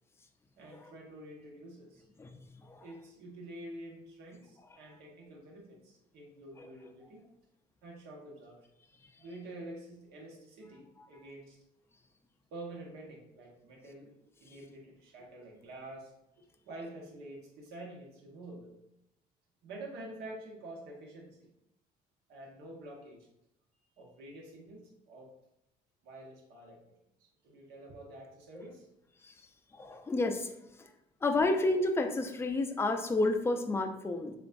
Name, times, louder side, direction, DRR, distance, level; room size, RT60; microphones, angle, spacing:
voice 1, 0.6-2.0 2.8-7.2 7.8-8.6 9.2-11.6 12.5-14.1 14.4-18.7 19.6-21.5 22.3-23.3 24.0-25.3 26.0-26.9 27.4-28.9, right 1 dB, 80° right, -1 dB, 1.4 m, -48 dB
voice 2, 29.7-30.5 31.2-34.3, left 2 dB, 15° left, 5 dB, 0.5 m, -30 dB
6.9 x 2.5 x 2.6 m, 0.84 s
cardioid pair, 110°, 17 cm